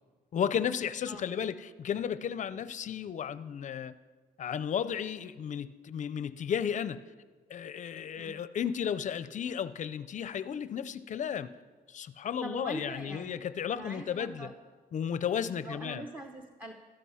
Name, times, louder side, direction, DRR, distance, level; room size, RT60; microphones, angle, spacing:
voice 1, 0.3-3.9 4.4-7.0 7.5-11.6 11.9-14.5 14.9-16.1, left 8 dB, 45° left, 14 dB, 0.5 m, -34 dB
voice 2, 12.4-13.4 13.7-14.5 15.6-16.7, right 1 dB, 10° right, 4 dB, 0.8 m, -42 dB
13.5 x 12.0 x 5.7 m, 1.4 s
cardioid pair, 150°, 17 cm